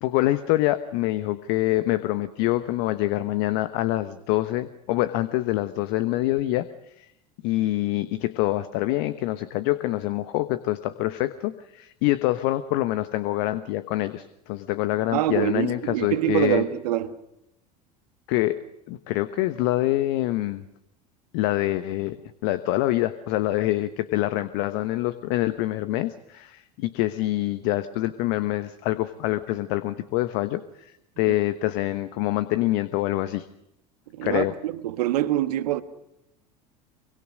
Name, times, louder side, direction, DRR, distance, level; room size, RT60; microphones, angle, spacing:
voice 1, 0.0-6.7 7.0-7.1 7.4-16.6 18.3-18.6 18.9-20.6 21.3-22.2 22.4-33.4 34.2-34.5, left 16 dB, 60° left, 1.2 m, -25 dB
voice 2, 15.1-17.1 31.3-31.4 34.1-35.8, right 13 dB, 70° right, 1.6 m, -25 dB
24.5 x 24.0 x 6.4 m
hypercardioid pair, 75°, 21 cm